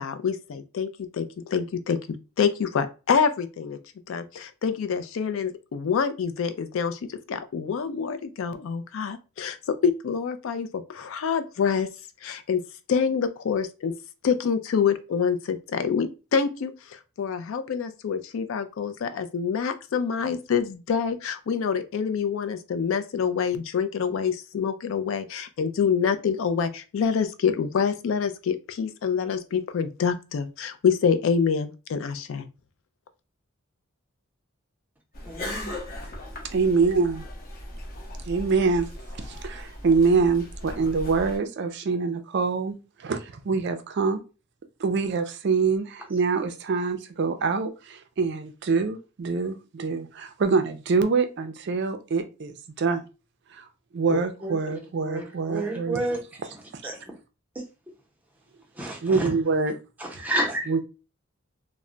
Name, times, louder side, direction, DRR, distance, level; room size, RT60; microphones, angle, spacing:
voice 1, 0.0-3.8 4.1-9.6 9.8-11.9 12.2-12.6 12.9-13.9 14.2-32.5 54.1-54.2, left 6 dB, 65° left, 0.3 m, -26 dB
sound 1, 35.1-41.4, left 1 dB, 45° left, 0.7 m, -38 dB
voice 2, 35.3-35.7 54.4-54.6 55.0-56.2 56.8-57.2 57.5-57.6 58.8-59.4 60.0-60.7, right 1 dB, 10° right, 0.6 m, -30 dB
voice 3, 36.5-37.2 38.3-38.9 39.2-44.2 44.8-53.0 53.5-53.7 53.9-56.0 56.7-56.8 59.0-59.8 60.7-60.8, right 4 dB, 55° right, 0.4 m, -25 dB
2.1 x 2.1 x 3.7 m
head